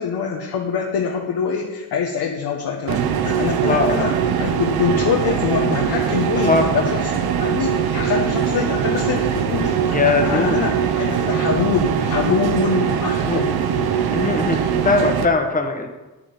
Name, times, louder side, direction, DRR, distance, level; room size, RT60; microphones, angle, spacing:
voice 1, 0.0-13.7, left 6 dB, 75° left, 0 dB, 1.4 m, -24 dB
sound 1, 2.9-15.3, right 8 dB, 85° right, 1.1 m, -21 dB
voice 2, 3.6-4.1 6.3-6.6 9.9-10.6 13.2-13.4 14.1-15.9, left 3 dB, 20° left, 4 dB, 1.5 m, -20 dB
9.9 x 9.7 x 5.6 m, 1.1 s
cardioid pair, 115°, 36 cm